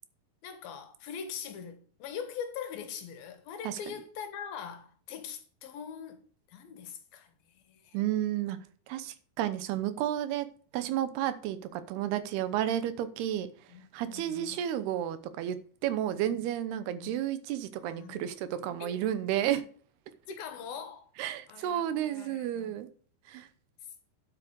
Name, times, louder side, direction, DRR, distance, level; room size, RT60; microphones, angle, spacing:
voice 1, 0.4-6.2 6.5-8.0 10.8-11.0 13.7-14.6 16.3-16.5 17.0-17.2 17.9-18.3 18.8-19.0 20.3-21.1 21.5-22.8, left 7 dB, 70° left, 3.1 m, -42 dB
voice 2, 7.9-8.6 8.9-10.5 10.7-13.5 13.9-15.6 15.8-19.6 21.2-22.9 23.3-23.5, right 11 dB, 85° right, 3.0 m, -32 dB
9.5 x 8.0 x 4.7 m
omnidirectional pair, 4.5 m